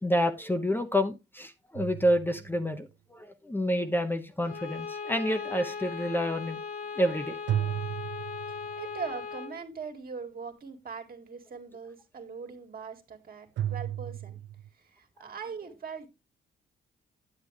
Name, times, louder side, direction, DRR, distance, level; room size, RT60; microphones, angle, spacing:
voice 1, 0.0-6.6 6.9-7.4, equal, 10° left, 6 dB, 0.9 m, -28 dB
sound 1, 1.7-2.9 7.5-9.0 13.6-14.7, right 11 dB, 70° right, 0.5 m, -34 dB
Bowed string instrument, 4.4-9.6, left 5 dB, 50° left, 1.5 m, -38 dB
voice 2, 8.5-14.4 14.7-16.1, right 5 dB, 50° right, 4 dB, 2.1 m, -41 dB
9.7 x 7.7 x 3.3 m, 0.25 s
cardioid pair, 90°, 20 cm